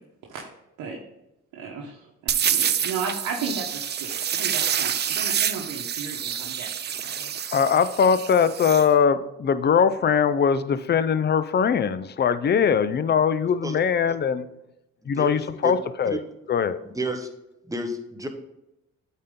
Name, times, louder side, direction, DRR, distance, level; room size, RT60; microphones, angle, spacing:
voice 1, 1.5-7.3, right 5 dB, 85° right, -1 dB, 1.1 m, -35 dB
sound 1, 2.3-8.9, right 9 dB, 35° right, 0.4 m, -27 dB
voice 2, 7.5-14.4 15.1-16.2 16.5-16.8, left 7 dB, 35° left, 14 dB, 0.5 m, -21 dB
voice 3, 15.0-15.7 16.1-16.2 16.8-17.3 17.7-18.3, right 1 dB, 10° right, 5 dB, 1.0 m, -31 dB
8.8 x 4.2 x 3.7 m, 0.90 s
cardioid pair, 90°, 30 cm